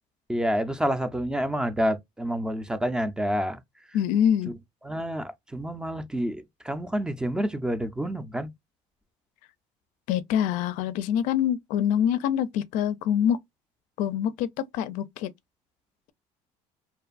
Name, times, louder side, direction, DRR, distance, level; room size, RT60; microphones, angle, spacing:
voice 1, 0.3-3.6 4.8-8.5, equal, 5° right, 0.4 m, -28 dB
voice 2, 3.9-4.5 10.1-13.4 14.0-15.3, left 9 dB, 75° left, 0.4 m, -25 dB
2.5 x 2.4 x 2.3 m
cardioid pair, 110°, 13 cm